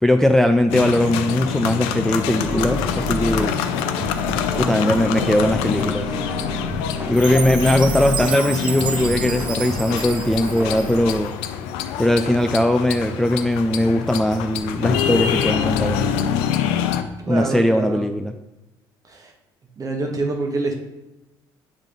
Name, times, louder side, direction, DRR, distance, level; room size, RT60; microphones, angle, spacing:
voice 1, 0.0-3.6 4.6-6.1 7.1-11.3 12.0-16.2 17.3-18.3, left 1 dB, 5° left, 6 dB, 0.3 m, -19 dB
sound 1, 0.7-17.0, left 8 dB, 85° left, 0.4 m, -25 dB
sound 2, 2.4-11.2, right 2 dB, 20° right, 1.1 m, -31 dB
Chime, 7.1-11.3, right 8 dB, 55° right, 0.5 m, -31 dB
voice 2, 17.2-18.1 19.1-19.3 19.8-20.7, right 3 dB, 40° right, 3 dB, 1.2 m, -26 dB
7.4 x 3.7 x 3.5 m, 0.98 s
supercardioid pair, 75°, 9 cm